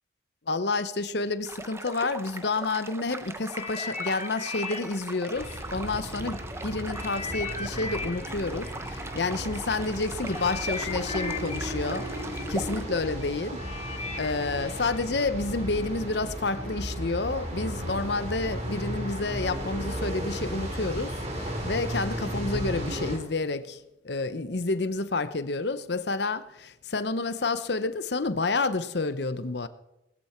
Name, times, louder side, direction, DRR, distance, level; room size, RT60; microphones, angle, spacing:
voice 1, 0.5-12.1 12.5-13.6 14.2-29.7, left 3 dB, 60° left, 0.8 m, -29 dB
sound 1, 1.4-12.8, right 2 dB, 15° right, 0.8 m, -41 dB
sound 2, 3.5-6.4 6.9-15.9 16.6-16.7, left 4 dB, 35° left, 1.4 m, -39 dB
sound 3, 5.3-23.2, equal, 35° right, 3.5 m, -35 dB
19.5 x 13.0 x 4.4 m
head